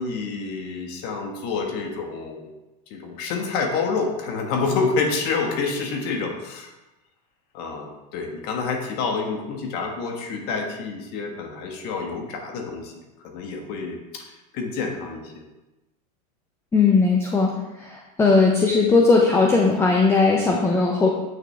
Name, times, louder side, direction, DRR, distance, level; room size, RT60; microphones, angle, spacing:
voice 1, 0.0-2.5 2.9-6.7 7.5-12.9 13.2-15.4, left 4 dB, 50° left, 2 dB, 1.6 m, -28 dB
voice 2, 16.7-21.1, left 4 dB, 10° left, 0 dB, 0.7 m, -18 dB
9.1 x 6.3 x 3.4 m, 1.0 s
supercardioid pair, 135°, 21 cm